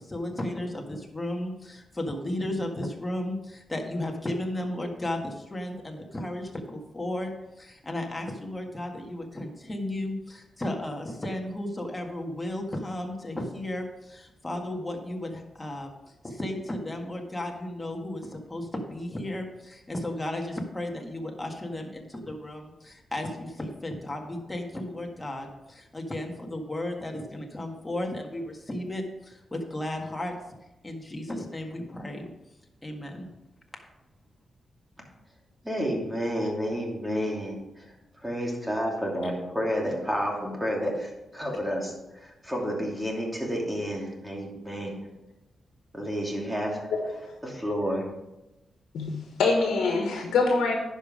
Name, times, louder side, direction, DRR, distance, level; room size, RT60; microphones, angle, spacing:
voice 1, 0.0-15.9 16.2-30.4 30.8-32.2 32.8-33.3, left 1 dB, 20° left, 1.7 m, -34 dB
voice 2, 35.6-37.6 38.2-40.9 41.3-41.9 42.2-45.1 45.9-46.9 47.4-48.0, equal, 10° right, 2.8 m, -30 dB
voice 3, 49.4-50.8, left 4 dB, 90° left, 1.3 m, -24 dB
10.5 x 5.4 x 5.1 m
cardioid pair, 70°, 0 cm